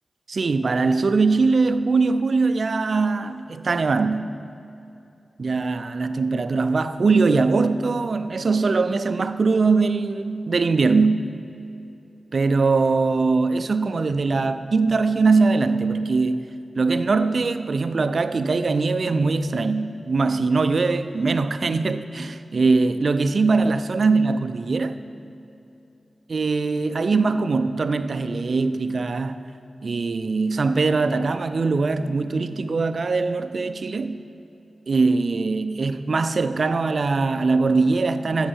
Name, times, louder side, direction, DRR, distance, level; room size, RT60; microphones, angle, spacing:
voice 1, 0.3-4.4 5.4-11.3 12.3-16.4 16.8-25.0 26.3-29.4 29.8-34.2 34.9-38.5, right 4 dB, 60° right, 0.5 m, -21 dB
8.6 x 7.1 x 7.3 m
cardioid pair, 60°, 0 cm